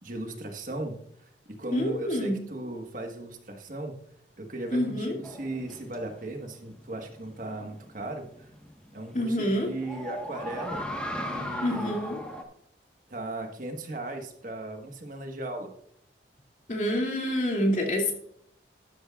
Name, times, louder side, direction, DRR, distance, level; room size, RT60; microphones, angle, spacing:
voice 1, 0.0-3.9 4.4-8.5 8.9-10.9 11.1-12.0 13.1-15.7, right 2 dB, 45° right, 4 dB, 1.4 m, -37 dB
voice 2, 1.7-2.4 4.7-5.2 9.1-9.7 11.6-12.2 16.7-18.1, equal, 45° left, 0 dB, 2.5 m, -27 dB
sound 1, 5.2-12.4, equal, 5° left, 1.3 m, -38 dB
12.5 x 11.5 x 2.4 m, 0.69 s
head